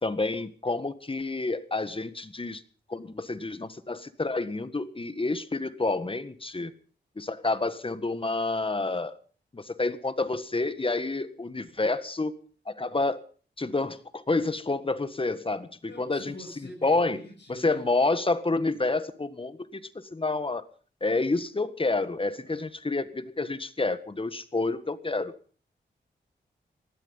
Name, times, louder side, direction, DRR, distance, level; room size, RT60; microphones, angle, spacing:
voice 1, 0.0-2.6 2.9-6.7 7.2-9.2 9.5-12.3 12.6-13.2 13.6-16.3 16.8-17.2 17.5-20.6 21.0-25.3, left 3 dB, 30° left, 13 dB, 1.6 m, -29 dB
voice 2, 15.9-17.9 22.5-22.7, left 1 dB, 70° left, 1 dB, 7.3 m, -46 dB
18.5 x 13.5 x 5.5 m, 0.42 s
cardioid pair, 65°, 19 cm